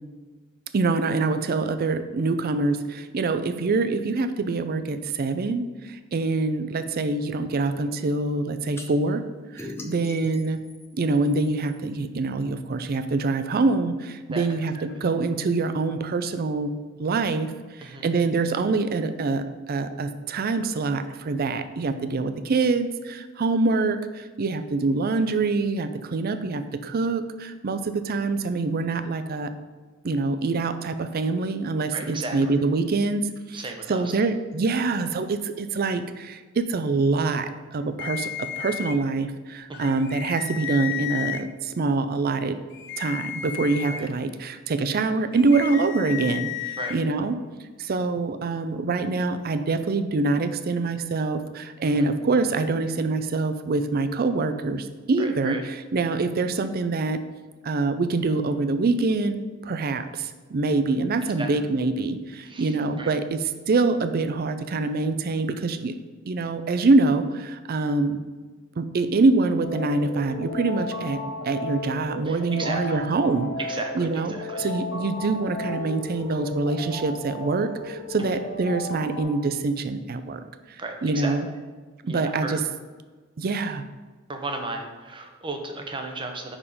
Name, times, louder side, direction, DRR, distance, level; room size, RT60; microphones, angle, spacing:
voice 1, 0.7-9.2 9.5-10.6 10.9-16.7 17.0-29.5 30.0-42.6 43.0-47.4 47.8-57.2 57.6-59.4 59.6-66.0 66.3-68.2 68.8-73.5 73.9-80.4 80.7-81.5 82.0-82.6 83.4-83.8, right 3 dB, 45° right, 10 dB, 0.4 m, -25 dB
sound 1, 8.8-8.9 9.6-11.8, left 2 dB, 10° left, 0.7 m, -40 dB
voice 2, 17.8-18.1 31.9-32.6 33.5-34.0 39.7-39.9 43.9-44.1 46.8-47.0 51.9-52.1 55.2-55.6 61.4-61.5 62.4-63.1 72.3-73.0 73.7-74.7 80.8-81.3 82.1-82.6 84.3-86.6, right 2 dB, 25° right, 4 dB, 0.8 m, -35 dB
sound 2, 38.0-38.9 39.7-41.4 42.7-44.0 45.3-47.0, left 12 dB, 60° left, 0.6 m, -33 dB
sound 3, 69.6-79.2, left 1 dB, 80° left, 1.6 m, -34 dB
5.4 x 4.9 x 4.9 m, 1.3 s
head